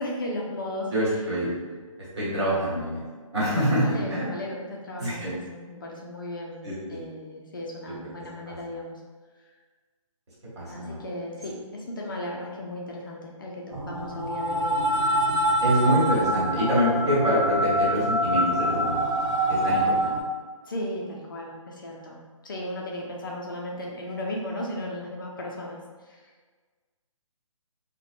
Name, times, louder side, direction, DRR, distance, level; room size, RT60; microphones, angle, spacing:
voice 1, 0.0-1.2 3.5-6.6 6.9-9.0 10.7-14.8 20.6-26.2, left 1 dB, 40° left, -2 dB, 0.3 m, -35 dB
voice 2, 0.9-1.5 2.2-3.0 3.3-4.2 5.0-5.3 6.6-7.0 8.5-8.6 10.6-11.0 15.6-20.1, equal, 50° right, -8 dB, 1.3 m, -26 dB
sound 1, 13.7-20.2, right 1 dB, 75° right, 0.9 m, -25 dB
2.8 x 2.1 x 2.5 m, 1.4 s
hypercardioid pair, 160°, 18 cm